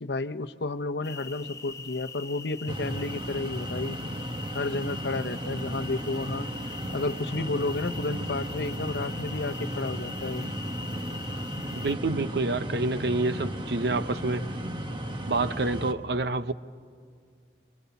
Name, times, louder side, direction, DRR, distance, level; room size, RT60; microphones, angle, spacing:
voice 1, 0.0-4.0 4.5-6.5 6.9-10.5, left 2 dB, 75° left, 0.8 m, -31 dB
sound 1, 1.0-11.9, left 5 dB, 15° left, 0.6 m, -42 dB
sound 2, 2.7-15.9, equal, 25° right, 1.3 m, -35 dB
voice 2, 11.7-14.5 15.3-16.5, right 3 dB, 70° right, 0.8 m, -28 dB
28.5 x 24.5 x 7.1 m
head